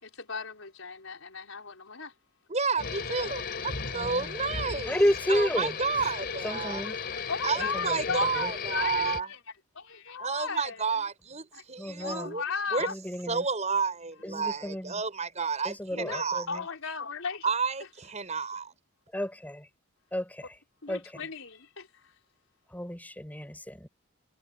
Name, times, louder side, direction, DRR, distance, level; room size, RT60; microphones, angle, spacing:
voice 1, 0.0-2.1 6.8-6.9 7.3-9.4 9.7-11.0 11.5-11.6 12.0-12.9 15.9-17.5 20.8-22.1, left 5 dB, 80° left, 4.6 m, -36 dB
voice 2, 2.5-5.0 5.3-6.9 7.4-9.3 10.2-12.4 12.7-12.9 13.3-16.5 17.4-18.7, right 5 dB, 35° right, 6.2 m, -31 dB
sound 1, 2.8-9.2, left 5 dB, 50° left, 3.1 m, -35 dB
voice 3, 3.9-4.3 4.9-5.7 6.4-7.0 7.6-8.0 8.3-8.5 11.8-12.3 12.9-13.4 14.2-14.9 15.7-16.6 19.1-19.7 20.1-20.5 20.9-21.0 22.7-23.9, equal, 10° left, 5.4 m, -31 dB
head